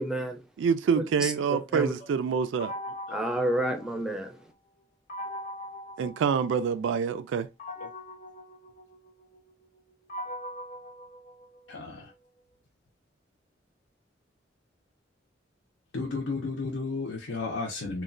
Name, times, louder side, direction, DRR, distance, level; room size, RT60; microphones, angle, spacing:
voice 1, 0.0-0.4 1.0-1.9 3.1-4.4, right 1 dB, 5° right, 0.4 m, -30 dB
voice 2, 0.6-2.7 6.0-7.5, right 6 dB, 85° right, 0.3 m, -26 dB
sound 1, 2.6-4.4 5.1-6.9 7.6-11.9, left 1 dB, 40° left, 0.6 m, -41 dB
voice 3, 11.7-12.1 15.9-18.0, left 3 dB, 85° left, 0.5 m, -33 dB
3.0 x 2.1 x 2.4 m
head